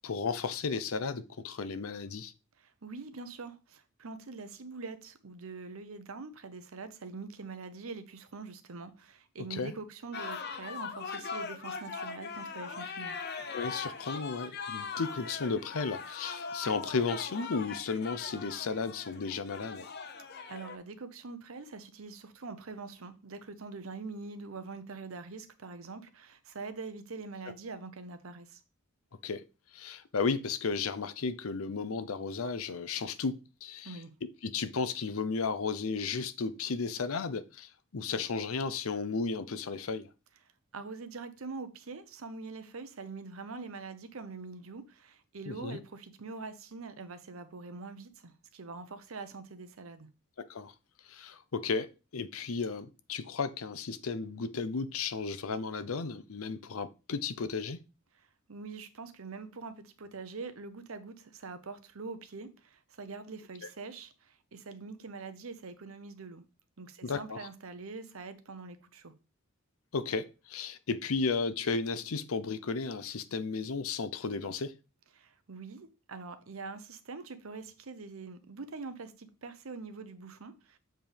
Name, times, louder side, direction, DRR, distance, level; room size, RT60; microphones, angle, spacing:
voice 1, 0.0-2.3 9.5-9.7 13.5-19.9 29.2-29.4 29.7-33.3 33.6-34.0 34.4-40.1 45.5-45.8 50.5-50.7 51.0-51.9 52.1-57.8 67.0-67.5 69.9-74.7, left 4 dB, 85° left, 0.7 m, -34 dB
voice 2, 2.6-13.2 20.5-28.6 33.8-34.1 40.7-50.1 58.2-66.4 66.8-69.1 75.2-80.8, right 4 dB, 75° right, 0.8 m, -44 dB
sound 1, 10.1-20.8, left 5 dB, 50° left, 0.8 m, -40 dB
7.5 x 4.5 x 3.4 m
head